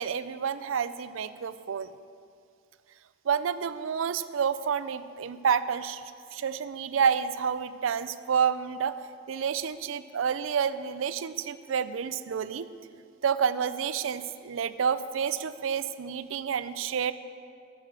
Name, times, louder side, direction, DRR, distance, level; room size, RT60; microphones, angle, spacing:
voice 1, 0.0-1.9 3.2-8.9 9.3-12.7 13.2-17.1, right 7 dB, 80° right, 14 dB, 0.4 m, -29 dB
9.8 x 6.8 x 7.2 m, 2.3 s
head